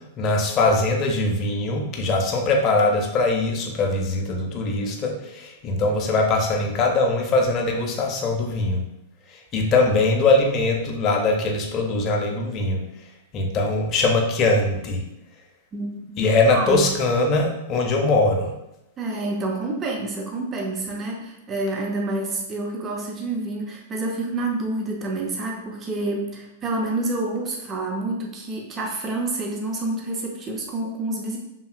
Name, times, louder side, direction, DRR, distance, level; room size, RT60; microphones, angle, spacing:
voice 1, 0.2-8.8 9.3-12.8 13.3-15.0 16.2-18.5, left 2 dB, 35° left, 1 dB, 0.5 m, -21 dB
voice 2, 15.7-16.2 16.5-16.9 19.0-31.4, right 2 dB, 25° right, 0 dB, 0.4 m, -28 dB
2.8 x 2.6 x 2.5 m, 0.91 s
hypercardioid pair, 130°, 0 cm